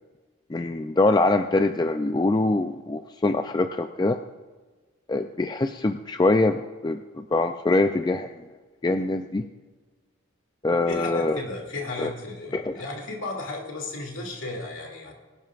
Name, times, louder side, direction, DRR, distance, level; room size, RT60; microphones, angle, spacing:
voice 1, 0.5-4.2 5.1-8.3 8.8-9.4 10.6-11.4 12.0-12.1 12.5-12.7, left 2 dB, 20° left, 7 dB, 0.3 m, -24 dB
voice 2, 10.9-15.1, left 2 dB, 65° left, 1 dB, 2.6 m, -34 dB
22.5 x 11.5 x 2.5 m, 1.4 s
head